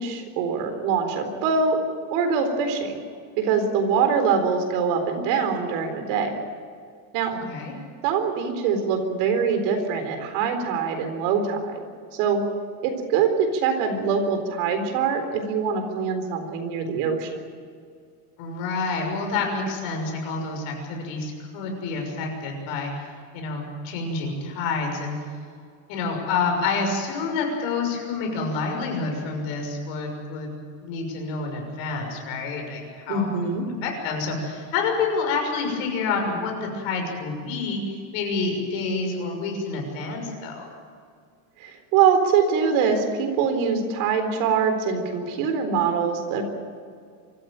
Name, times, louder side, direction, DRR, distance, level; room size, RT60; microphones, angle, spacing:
voice 1, 0.0-1.8 2.1-3.0 3.4-6.3 7.1-7.3 8.0-11.8 12.1-12.4 12.8-17.3 33.1-33.7 41.6-46.4, right 6 dB, 65° right, 6 dB, 4.1 m, -23 dB
voice 2, 7.3-7.7 18.4-22.9 23.3-25.1 25.9-33.3 33.8-40.7, left 4 dB, 65° left, 2 dB, 6.5 m, -28 dB
25.0 x 14.5 x 9.1 m, 2.2 s
cardioid pair, 180°, 41 cm